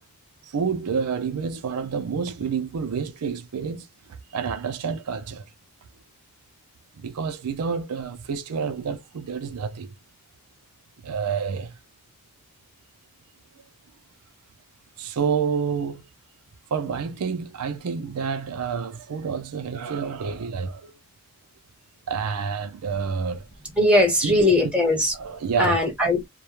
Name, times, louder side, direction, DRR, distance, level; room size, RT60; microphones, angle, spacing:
voice 1, 0.4-5.4 7.0-9.9 11.0-11.8 15.0-16.0 16.7-20.9 22.1-23.5 24.0-24.7 25.1-25.8, right 6 dB, 80° right, 0.4 m, -29 dB
voice 2, 23.8-25.1 25.6-26.3, left 1 dB, 5° right, 1.0 m, -20 dB
2.2 x 2.0 x 2.9 m
head